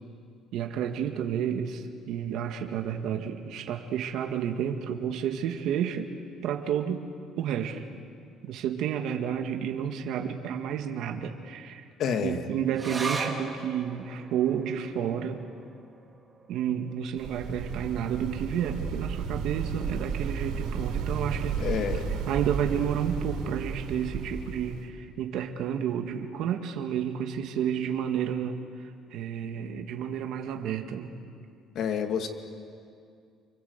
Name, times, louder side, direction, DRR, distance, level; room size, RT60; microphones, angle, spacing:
voice 1, 0.5-6.1 6.4-7.0 7.4-7.8 8.4-11.8 12.2-15.4 16.5-21.8 22.3-28.6 29.1-31.1, right 8 dB, 60° right, 4 dB, 1.9 m, -31 dB
voice 2, 12.0-12.4 21.6-22.1 31.7-32.3, left 7 dB, 50° left, 6 dB, 2.1 m, -28 dB
sound 1, 12.7-19.5 19.8-19.9 20.3-20.9 21.5-21.6, right 3 dB, 15° right, 2.4 m, -40 dB
sound 2, 17.2-24.9, right 6 dB, 80° right, 4.9 m, -33 dB
29.5 x 24.5 x 8.2 m, 2.3 s
cardioid pair, 170°, 0 cm